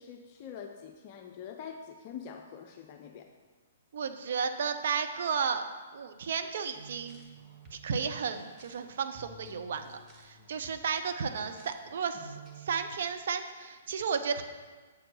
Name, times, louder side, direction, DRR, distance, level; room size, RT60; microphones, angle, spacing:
voice 1, 0.0-3.3, left 7 dB, 40° left, 4 dB, 0.5 m, -45 dB
voice 2, 3.9-5.6 5.9-7.2 7.7-12.3 12.6-14.4, right 6 dB, 55° right, 8 dB, 0.6 m, -33 dB
sound 1, 6.7-12.8, right 4 dB, 20° right, 1.2 m, -53 dB
7.1 x 4.5 x 6.2 m, 1.4 s
figure-of-eight pair, 120°, 0 cm